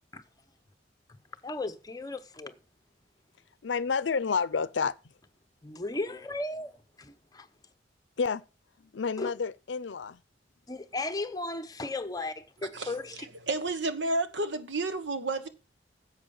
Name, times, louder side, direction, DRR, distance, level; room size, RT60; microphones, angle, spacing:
voice 1, 1.4-2.5 5.6-7.5 9.2-9.3 10.7-13.3, left 2 dB, 20° left, 0.9 m, -36 dB
voice 2, 3.6-4.9 8.2-8.4 8.9-10.2, left 5 dB, 90° left, 0.6 m, -29 dB
voice 3, 13.5-15.5, right 2 dB, 85° right, 1.3 m, -30 dB
10.5 x 7.8 x 5.4 m
head